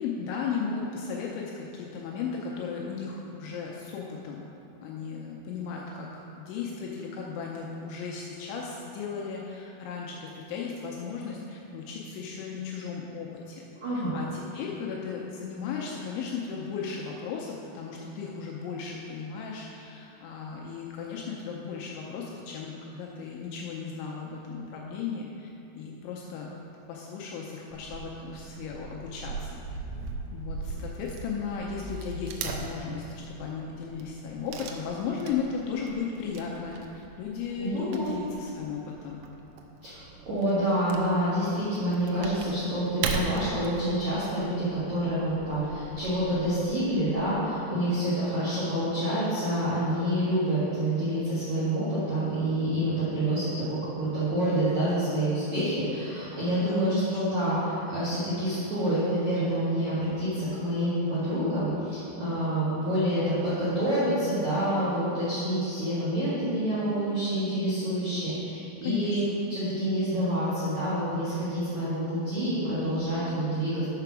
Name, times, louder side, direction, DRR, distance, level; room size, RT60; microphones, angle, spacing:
voice 1, 0.0-4.5 4.8-13.6 13.9-25.5 25.8-26.5 26.9-29.8 30.3-39.2 56.6-57.2 68.8-69.4, left 6 dB, 80° left, -2 dB, 2.7 m, -35 dB
voice 2, 13.8-14.2 37.6-38.1 39.8-69.2 69.5-73.9, right 1 dB, 70° right, -12 dB, 1.7 m, -27 dB
Wood / Tearing, 27.7-47.3, right 4 dB, 85° right, 3.3 m, -40 dB
6.8 x 5.8 x 5.9 m, 2.9 s
omnidirectional pair, 5.9 m